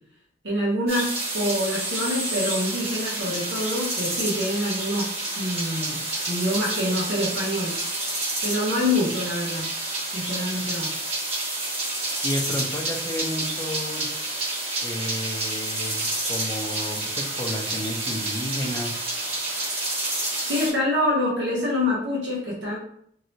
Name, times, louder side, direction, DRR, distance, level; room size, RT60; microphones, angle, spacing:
voice 1, 0.4-5.1 5.4-7.8 8.4-9.8 10.1-10.9 20.4-22.8, left 1 dB, 80° right, -4 dB, 1.0 m, -26 dB
sound 1, 0.9-20.7, right 2 dB, 35° right, 1.1 m, -29 dB
voice 2, 12.2-14.1 14.8-16.0 16.3-19.0, left 1 dB, 20° left, 0 dB, 0.6 m, -31 dB
3.1 x 2.8 x 2.8 m, 0.67 s
head